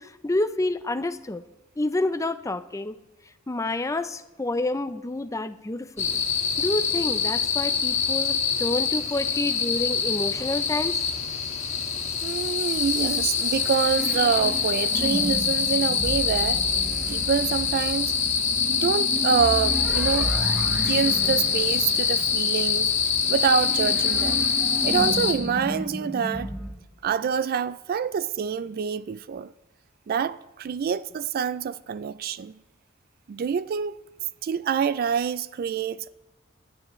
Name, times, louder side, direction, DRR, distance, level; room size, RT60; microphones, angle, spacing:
voice 1, 0.0-1.4 1.8-3.0 3.5-6.2 6.6-11.0, left 2 dB, 15° left, 0.5 m, -28 dB
sound 1, 6.0-25.3, left 6 dB, 35° left, 1.7 m, -25 dB
voice 2, 12.2-16.6 17.1-18.1 18.7-20.3 20.7-24.5 24.8-26.5 27.0-29.5 30.1-32.5 33.3-34.0 34.4-36.1, right 7 dB, 50° right, 0.3 m, -26 dB
sound 2, 12.8-26.7, equal, 5° right, 1.2 m, -34 dB
19.5 x 12.0 x 3.1 m
head